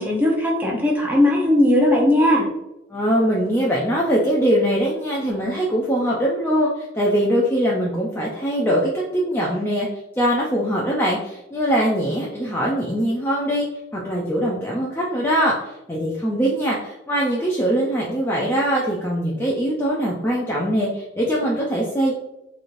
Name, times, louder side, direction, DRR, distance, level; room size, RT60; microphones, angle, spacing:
voice 1, 0.0-2.5, left 1 dB, 10° right, -3 dB, 0.8 m, -18 dB
voice 2, 2.9-9.9 10.2-13.7 13.9-22.1, equal, 10° left, -4 dB, 0.4 m, -22 dB
4.0 x 3.1 x 2.5 m, 0.93 s
head